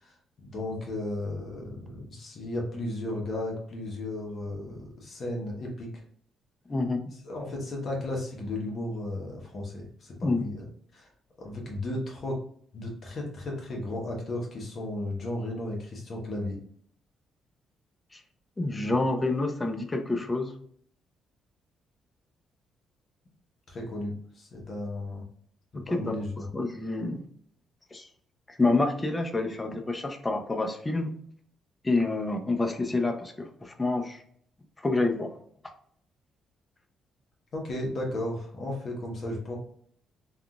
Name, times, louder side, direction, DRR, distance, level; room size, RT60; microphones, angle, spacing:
voice 1, 0.0-6.0 7.2-10.7 10.9-11.1 11.4-12.4 12.7-16.6 23.7-25.2 25.9-26.5 37.5-39.5, left 1 dB, 55° left, -1 dB, 0.9 m, -34 dB
voice 2, 18.6-20.5 25.7-26.1 26.5-27.2 27.9-28.1 28.5-31.1 31.8-34.2 34.8-35.3, left 2 dB, 20° left, 4 dB, 0.5 m, -28 dB
3.6 x 2.3 x 2.3 m, 0.62 s
cardioid pair, 90°, 0 cm